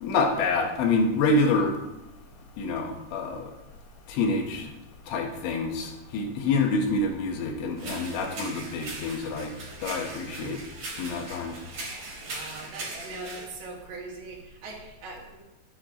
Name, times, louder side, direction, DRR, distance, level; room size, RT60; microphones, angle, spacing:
voice 1, 0.0-1.8 2.6-3.5 4.1-4.7 5.1-9.5 9.8-10.6 11.0-11.6, left 3 dB, 75° left, 2 dB, 3.9 m, -27 dB
sound 1, 7.8-13.5, right 2 dB, 35° right, 4.7 m, -39 dB
voice 2, 12.2-15.4, right 3 dB, 70° right, 0 dB, 4.3 m, -41 dB
20.5 x 9.7 x 3.9 m, 1.0 s
omnidirectional pair, 5.4 m